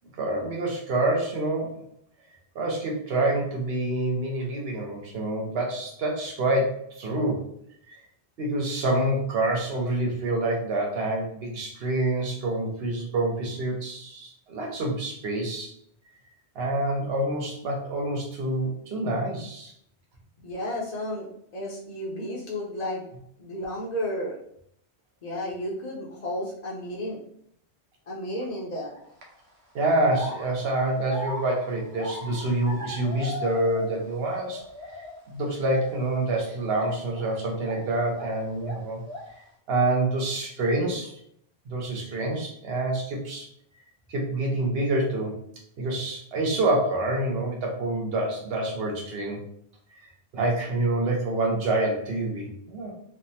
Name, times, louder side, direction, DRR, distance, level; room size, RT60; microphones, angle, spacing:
voice 1, 0.2-1.8 2.5-7.5 8.4-15.7 16.6-19.7 29.7-34.6 35.3-39.0 39.7-41.1 41.7-43.5 44.1-45.4 45.8-49.4 50.3-52.9, right 2 dB, 70° right, 0 dB, 0.9 m, -27 dB
voice 2, 20.4-21.3 21.5-23.0 23.4-24.4 25.2-27.2 28.1-29.0, left 1 dB, 45° left, -5 dB, 0.6 m, -32 dB
sound 1, 28.9-29.2 29.8-34.2 34.5-35.2 35.7-35.9 36.7-38.4 38.6-39.4, equal, 90° right, 1.0 m, -37 dB
3.2 x 2.0 x 2.6 m, 0.69 s
omnidirectional pair, 1.1 m